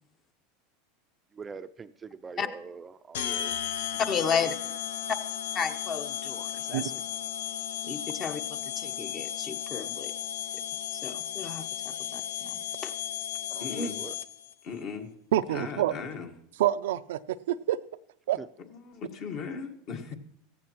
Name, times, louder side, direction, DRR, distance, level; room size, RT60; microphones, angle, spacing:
voice 1, 1.3-3.6 4.2-4.5 13.5-14.2 18.4-18.5, right 5 dB, 20° right, 11 dB, 0.4 m, -43 dB
sound 1, 3.1-14.5, left 10 dB, 85° left, 0.6 m, -35 dB
voice 2, 4.0-4.5 5.5-6.9 7.8-10.1 10.9-12.9 13.7-13.9, left 6 dB, 35° left, 9 dB, 0.9 m, -33 dB
voice 3, 13.6-14.0 14.6-15.1 15.5-16.3 18.7-20.2, left 6 dB, 50° left, 5 dB, 1.5 m, -38 dB
voice 4, 15.3-15.9 16.6-17.8 18.3-18.4, right 13 dB, 85° right, 12 dB, 0.4 m, -27 dB
16.5 x 14.5 x 3.0 m, 0.71 s
supercardioid pair, 120°, 0 cm